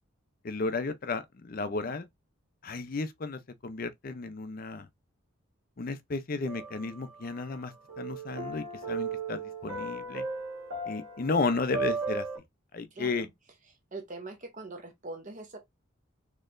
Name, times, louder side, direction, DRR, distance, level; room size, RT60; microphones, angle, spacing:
voice 1, 0.4-2.1 2.6-4.9 5.8-10.2 10.9-12.3 12.7-13.3, left 3 dB, 40° left, 0.5 m, -33 dB
sound 1, 6.5-7.6 7.9-12.4, right 3 dB, 75° right, 1.6 m, -36 dB
voice 2, 12.9-13.3 13.7-15.6, right 2 dB, 35° right, 0.6 m, -43 dB
4.2 x 2.9 x 2.5 m
head